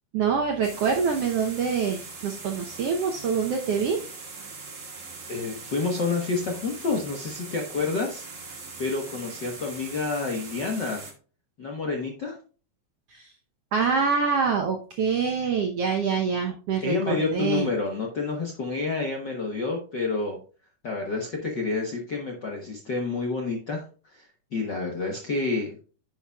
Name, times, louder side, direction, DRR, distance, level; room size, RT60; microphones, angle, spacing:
voice 1, 0.1-4.1 13.1-13.3 13.7-17.7, right 6 dB, 75° right, 2 dB, 1.4 m, -25 dB
sound 1, 0.6-11.1, right 4 dB, 40° right, 2.2 m, -41 dB
voice 2, 5.3-11.1 11.6-12.4 16.8-20.4 20.8-25.8, left 3 dB, 70° left, 1 dB, 1.0 m, -29 dB
10.5 x 7.0 x 2.3 m, 0.38 s
omnidirectional pair, 3.8 m